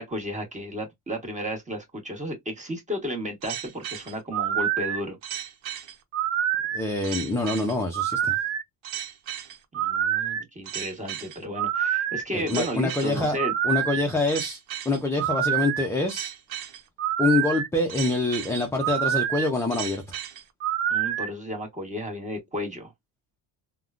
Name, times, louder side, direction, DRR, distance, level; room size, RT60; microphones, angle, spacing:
voice 1, 0.0-5.2 9.7-13.5 20.9-22.9, equal, 15° right, 1.1 m, -33 dB
sound 1, 3.4-21.3, right 10 dB, 85° right, 0.8 m, -28 dB
voice 2, 6.7-8.4 12.3-13.4 13.6-16.3 17.2-20.2, left 2 dB, 5° left, 0.4 m, -26 dB
3.5 x 2.2 x 2.4 m
cardioid pair, 110°, 46 cm